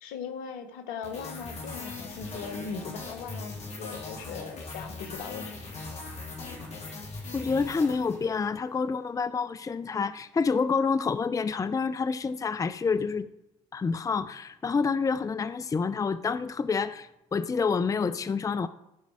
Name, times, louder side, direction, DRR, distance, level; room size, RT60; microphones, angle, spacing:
voice 1, 0.0-5.6, left 6 dB, 80° left, 1.2 m, -39 dB
sound 1, 1.0-8.6, left 3 dB, 50° left, 3.5 m, -40 dB
voice 2, 7.3-13.3 13.7-18.7, left 5 dB, 25° left, 0.5 m, -28 dB
15.0 x 5.3 x 4.8 m
hypercardioid pair, 60°, 14 cm